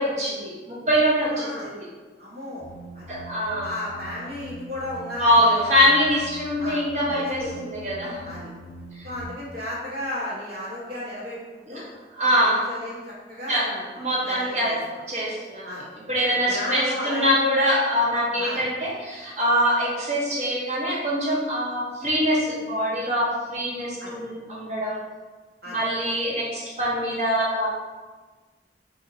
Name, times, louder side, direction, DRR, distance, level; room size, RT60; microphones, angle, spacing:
voice 1, 0.0-1.9 3.1-3.7 5.2-8.3 9.0-9.1 11.7-11.8 12.1-12.7 13.5-13.7 14.0-14.8 15.1-15.7 16.1-25.0 25.7-27.7, equal, 40° right, -5 dB, 0.9 m, -23 dB
voice 2, 1.3-1.7 2.2-2.7 2.9-3.1 3.6-5.9 6.6-6.8 7.1-7.6 8.2-8.5 9.0-11.9 12.2-15.0 15.6-15.8 16.5-17.3 18.4-18.6 24.0-24.2 25.6-25.8, left 1 dB, 60° right, -7 dB, 1.3 m, -34 dB
sound 1, 2.6-9.2, right 1 dB, 40° left, 0.6 m, -42 dB
2.7 x 2.7 x 4.0 m, 1.3 s
head